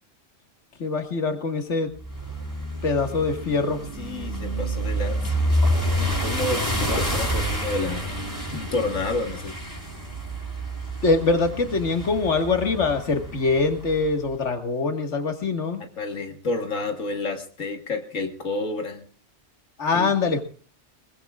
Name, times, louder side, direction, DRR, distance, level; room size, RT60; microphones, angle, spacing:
voice 1, 0.8-1.9 2.8-3.8 11.0-15.8 19.8-20.4, left 3 dB, 65° left, 6 dB, 2.1 m, -23 dB
sound 1, 2.0-14.1, equal, 15° right, 6.2 m, -28 dB
voice 2, 4.0-5.4 6.0-8.1 8.5-9.5 16.0-19.0 19.9-20.1, left 2 dB, 85° left, 4 dB, 2.0 m, -30 dB
22.0 x 21.0 x 2.4 m, 0.41 s
omnidirectional pair, 1.3 m